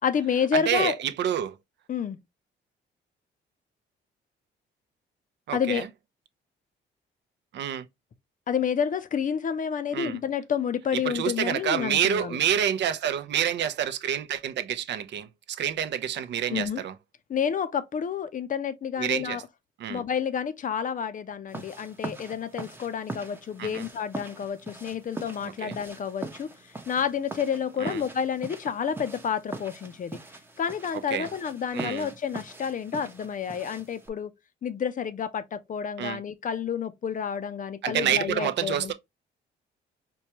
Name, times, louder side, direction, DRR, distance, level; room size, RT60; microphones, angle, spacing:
voice 1, 0.0-1.0 1.9-2.2 5.5-5.9 8.5-12.4 16.5-16.8 17.3-19.4 19.9-26.5 26.9-30.2 30.6-34.3 34.6-38.9, left 7 dB, 40° left, 0.5 m, -29 dB
voice 2, 0.5-1.6 5.5-5.9 7.5-7.9 9.9-10.2 10.9-16.9 19.0-19.4 19.8-20.0 23.6-23.8 25.6-25.7 27.8-28.0 31.1-31.3 31.7-32.1 36.0-36.2 37.8-38.9, right 9 dB, 65° right, 0.5 m, -28 dB
sound 1, 21.5-34.1, right 2 dB, 10° right, 0.7 m, -42 dB
4.4 x 2.3 x 2.8 m
cardioid pair, 90°, 20 cm